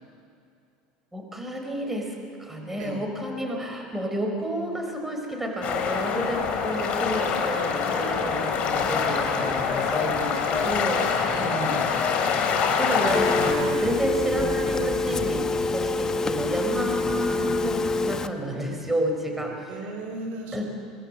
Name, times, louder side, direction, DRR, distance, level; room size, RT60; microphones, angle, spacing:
voice 1, 1.1-2.1 2.4-11.5 12.8-19.9 20.5-20.6, right 1 dB, 10° right, 3 dB, 4.7 m, -30 dB
sound 1, 5.6-13.5, left 6 dB, 45° left, 4.2 m, -25 dB
voice 2, 10.2-10.8 11.2-11.9 19.7-20.6, right 2 dB, 65° right, 4 dB, 4.5 m, -35 dB
Telephone, 13.1-18.3, left 3 dB, 20° left, 1.1 m, -26 dB
24.0 x 20.0 x 7.8 m, 2.4 s
supercardioid pair, 100°, 3 cm